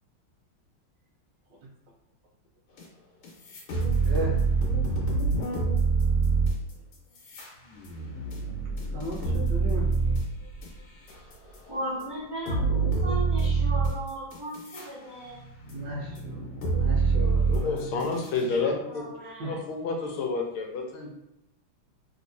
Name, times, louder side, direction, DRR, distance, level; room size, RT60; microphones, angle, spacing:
sound 1, 2.8-2.9 3.2-11.6 12.0-12.1 12.5-14.9 15.3-18.5, right 4 dB, 70° left, 1.6 m, -26 dB
voice 1, 4.0-4.4 8.9-9.9 15.7-16.5 16.7-18.9 19.2-19.5, right 1 dB, 70° right, -4 dB, 1.1 m, -37 dB
voice 2, 11.7-15.4 18.8-19.6, right 1 dB, 15° right, -10 dB, 0.9 m, -36 dB
voice 3, 17.5-19.0 19.5-21.1, left 4 dB, 90° left, 1 dB, 1.5 m, -29 dB
3.5 x 2.9 x 2.6 m, 0.83 s
omnidirectional pair, 2.3 m